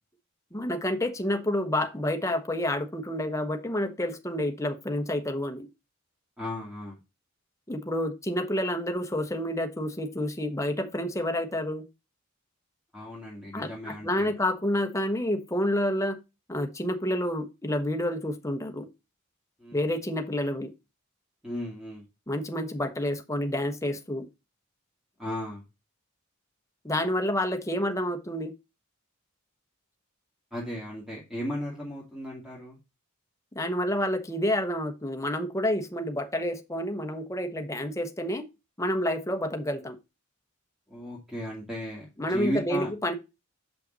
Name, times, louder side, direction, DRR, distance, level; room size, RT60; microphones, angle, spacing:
voice 1, 0.5-5.7 7.7-11.8 13.5-16.2 16.5-18.9 19.7-20.7 22.3-24.3 26.8-28.5 33.5-38.5 38.8-40.0 42.2-43.1, left 1 dB, 15° left, 1.1 m, -29 dB
voice 2, 6.4-7.0 12.9-14.3 19.6-19.8 21.4-22.0 25.2-25.6 30.5-32.8 40.9-42.9, equal, ahead, 2.3 m, -35 dB
7.5 x 5.6 x 4.0 m
head